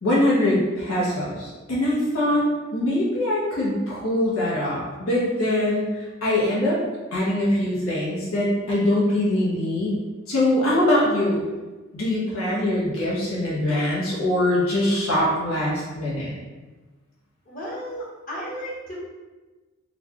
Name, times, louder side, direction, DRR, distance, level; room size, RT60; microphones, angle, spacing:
voice 1, 0.0-2.5 2.7-6.8 7.1-10.0 10.3-11.4 11.9-16.3, left 1 dB, 90° left, -6 dB, 0.9 m, -23 dB
voice 2, 17.5-19.0, equal, 40° left, -6 dB, 0.9 m, -34 dB
4.0 x 2.3 x 2.9 m, 1.2 s
head